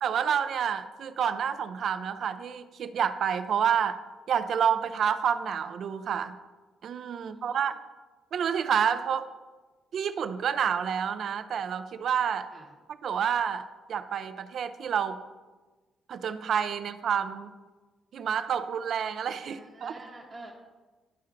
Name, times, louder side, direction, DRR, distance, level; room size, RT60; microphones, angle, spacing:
voice 1, 0.0-4.0 4.3-6.4 6.8-7.8 8.3-9.3 9.9-12.5 13.0-15.2 16.1-17.5 18.1-19.9, right 8 dB, 60° right, 12 dB, 0.4 m, -29 dB
voice 2, 7.2-7.6 12.5-12.7 19.4-20.5, right 2 dB, 35° right, -3 dB, 0.9 m, -47 dB
11.5 x 4.3 x 2.5 m, 1.3 s
cardioid pair, 135°, 0 cm